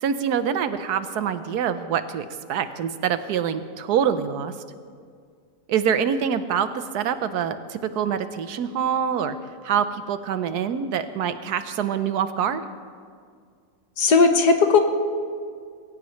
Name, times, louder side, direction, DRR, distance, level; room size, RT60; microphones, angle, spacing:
voice 1, 0.0-4.5 5.7-9.4 9.6-12.6, right 8 dB, 85° right, 11 dB, 1.3 m, -25 dB
voice 2, 14.0-14.8, left 4 dB, 85° left, 6 dB, 1.7 m, -16 dB
21.0 x 17.5 x 3.2 m, 2.1 s
omnidirectional pair, 1.7 m